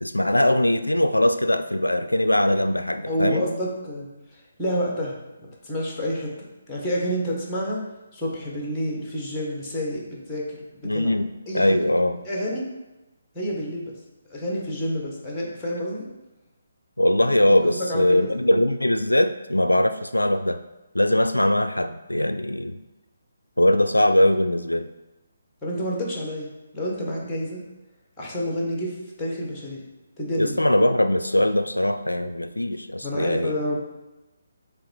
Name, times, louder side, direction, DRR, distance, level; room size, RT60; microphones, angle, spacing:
voice 1, 0.0-3.5 10.8-12.2 17.0-20.6 20.9-22.8 23.6-24.9 30.4-33.6, left 1 dB, 80° left, 9 dB, 0.3 m, -21 dB
voice 2, 3.1-4.1 4.6-5.2 5.6-7.8 8.1-11.1 11.5-11.8 12.2-12.6 13.3-13.9 14.3-16.0 17.9-18.3 25.6-27.6 28.2-29.8 30.2-30.6 33.0-33.8, equal, 5° left, -3 dB, 1.6 m, -29 dB
7.4 x 3.4 x 4.5 m, 1.0 s
figure-of-eight pair, 140°, 0 cm